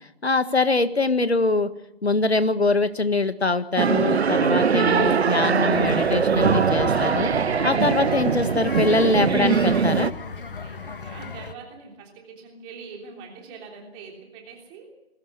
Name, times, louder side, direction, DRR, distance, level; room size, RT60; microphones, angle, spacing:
voice 1, 0.2-1.7 2.0-7.3 7.6-10.1, left 3 dB, 80° left, 11 dB, 1.9 m, -23 dB
sound 1, 3.8-10.1, right 6 dB, 80° right, 0.7 m, -21 dB
sound 2, 5.7-11.5, left 5 dB, 55° left, 1.5 m, -36 dB
voice 2, 10.5-14.9, right 5 dB, 15° right, 1 dB, 3.3 m, -43 dB
21.0 x 16.5 x 8.4 m, 0.88 s
figure-of-eight pair, 150°, 32 cm